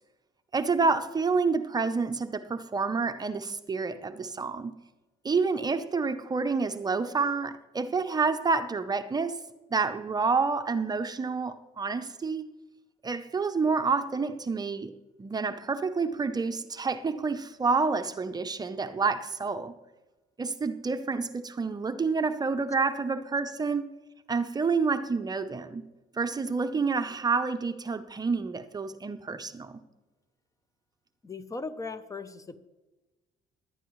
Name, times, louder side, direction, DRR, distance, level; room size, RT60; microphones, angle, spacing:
voice 1, 0.5-4.7 5.2-9.4 9.7-12.5 13.0-14.9 15.2-19.7 20.4-23.9 24.3-25.8 26.1-29.8, right 4 dB, 25° right, 0.7 m, -28 dB
voice 2, 31.2-32.6, left 3 dB, 20° left, 0.7 m, -38 dB
16.5 x 11.5 x 3.1 m
cardioid pair, 110°, 17 cm